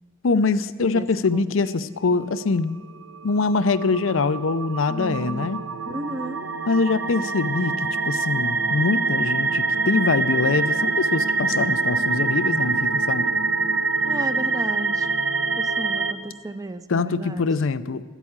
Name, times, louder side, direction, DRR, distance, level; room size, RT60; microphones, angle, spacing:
voice 1, 0.2-2.8 3.2-5.6 6.7-13.3 16.9-18.0, left 4 dB, 85° left, 14 dB, 0.5 m, -23 dB
sound 1, 2.9-16.1, right 4 dB, 75° right, 0.9 m, -25 dB
voice 2, 4.9-5.5 5.9-6.5 14.0-15.1 15.6-17.5, right 2 dB, 20° right, 12 dB, 0.5 m, -33 dB
13.0 x 8.2 x 8.7 m, 1.5 s
head